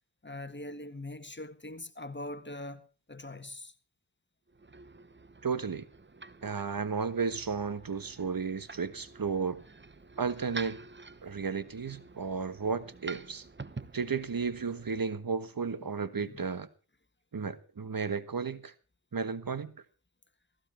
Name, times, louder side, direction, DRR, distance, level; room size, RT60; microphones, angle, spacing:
voice 1, 0.2-3.7 16.3-16.4, left 1 dB, 25° left, 1.7 m, -42 dB
sound 1, 4.5-15.1, right 4 dB, 25° right, 1.1 m, -48 dB
voice 2, 5.4-5.8 6.4-9.6 10.2-10.8 11.2-13.4 13.9-16.7 17.3-18.7 19.1-19.7, right 5 dB, 55° right, 1.5 m, -33 dB
15.0 x 14.5 x 4.4 m
cardioid pair, 45°, 42 cm